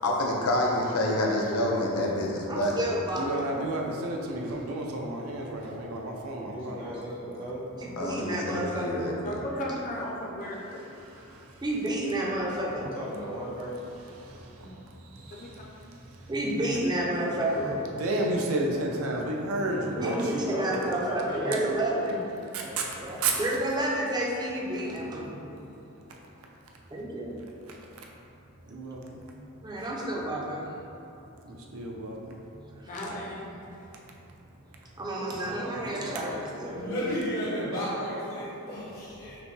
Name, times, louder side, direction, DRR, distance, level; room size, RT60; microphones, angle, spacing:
voice 1, 0.0-2.7 8.0-9.4, left 1 dB, 85° left, -1 dB, 0.6 m, -27 dB
voice 2, 2.5-3.5 7.8-9.1 11.6-12.9 14.6-14.7 16.2-17.8 20.0-22.2 23.4-25.6 26.9-27.3 29.0-29.1 29.6-30.7 32.6-33.6 34.9-36.8, right 1 dB, 20° right, -2 dB, 0.5 m, -30 dB
voice 3, 3.1-6.9 10.8-11.6 14.2-15.9 16.1-16.2 17.9-20.3 22.5-23.4 26.1-26.2 27.7-27.8 28.6-29.2 29.8-29.9 31.4-32.4, right 2 dB, 75° right, 0 dB, 0.5 m, -32 dB
voice 4, 6.4-7.9 12.8-13.8 17.5-17.7 20.0-22.2 22.6-23.2 35.2-37.0, equal, 45° right, -7 dB, 0.8 m, -38 dB
voice 5, 9.2-10.8 15.3-15.5 32.9-33.5, left 1 dB, 35° left, -3 dB, 0.6 m, -35 dB
voice 6, 36.8-39.4, equal, 70° left, -11 dB, 1.0 m, -32 dB
5.8 x 2.1 x 3.1 m, 2.9 s
head